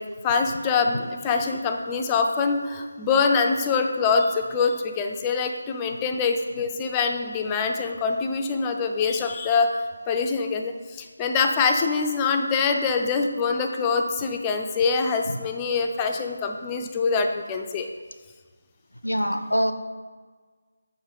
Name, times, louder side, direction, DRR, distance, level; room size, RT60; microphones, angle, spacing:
voice 1, 0.0-9.7 10.1-17.9, left 5 dB, 15° left, 4 dB, 0.5 m, -24 dB
voice 2, 19.0-19.7, equal, 85° left, 9 dB, 0.6 m, -24 dB
7.1 x 5.7 x 4.1 m, 1.5 s
figure-of-eight pair, 155°, 0 cm